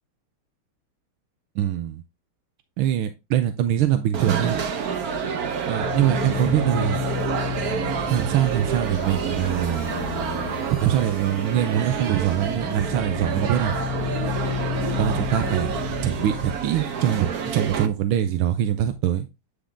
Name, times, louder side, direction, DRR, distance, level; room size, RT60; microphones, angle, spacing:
voice 1, 1.5-2.0 2.8-4.6 5.7-7.0 8.1-9.9 10.8-13.8 15.0-15.7 16.0-19.3, right 11 dB, 80° right, 8 dB, 1.5 m, -23 dB
sound 1, 4.1-17.9, right 7 dB, 55° right, 1.1 m, -28 dB
sound 2, 5.8-16.6, left 11 dB, 85° left, 1.6 m, -32 dB
sound 3, 7.9-12.7, left 3 dB, 60° left, 0.4 m, -47 dB
10.0 x 3.7 x 3.4 m, 0.23 s
omnidirectional pair, 2.4 m